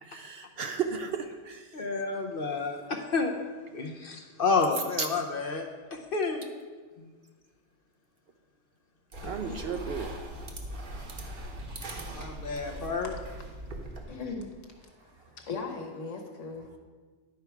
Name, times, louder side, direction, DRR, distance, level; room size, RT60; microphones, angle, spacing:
voice 1, 0.0-1.7 5.0-5.1 9.2-10.1 11.2-11.5, right 6 dB, 60° right, 6 dB, 0.7 m, -34 dB
voice 2, 1.7-3.3 3.7-6.5 7.0-7.1 9.2-9.6 12.1-13.1, left 4 dB, 55° left, 3 dB, 0.8 m, -30 dB
sound 1, 9.1-14.5, right 1 dB, 45° right, 1.1 m, -40 dB
voice 3, 13.7-14.5 15.5-16.7, left 4 dB, 70° left, 3 dB, 1.5 m, -38 dB
10.5 x 4.5 x 5.8 m, 1.4 s
omnidirectional pair, 1.3 m